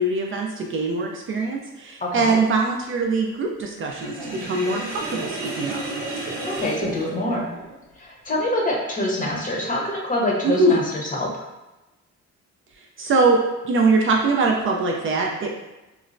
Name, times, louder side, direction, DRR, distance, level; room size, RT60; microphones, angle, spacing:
voice 1, 0.0-5.8 10.4-10.8 13.0-15.6, right 3 dB, 45° right, 0 dB, 0.4 m, -22 dB
voice 2, 2.0-2.4 6.4-7.5 8.0-11.5, left 1 dB, 25° left, -2 dB, 0.7 m, -25 dB
Sink (filling or washing), 3.8-7.8, right 2 dB, 90° right, 0.8 m, -32 dB
3.0 x 2.0 x 2.5 m, 1.0 s
cardioid pair, 90°, 30 cm